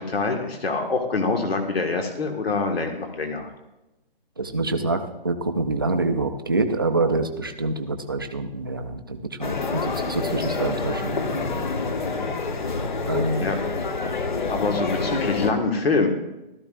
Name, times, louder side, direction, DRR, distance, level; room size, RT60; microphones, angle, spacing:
voice 1, 0.0-3.5 13.4-13.6 14.0-14.1 14.5-16.1, left 3 dB, 80° left, 4 dB, 1.8 m, -25 dB
voice 2, 4.4-11.7 13.1-13.5, right 3 dB, 25° right, 6 dB, 0.4 m, -26 dB
sound 1, 9.4-15.5, left 4 dB, 50° left, 1.1 m, -27 dB
15.0 x 13.0 x 2.5 m, 0.98 s
hypercardioid pair, 170°, 30 cm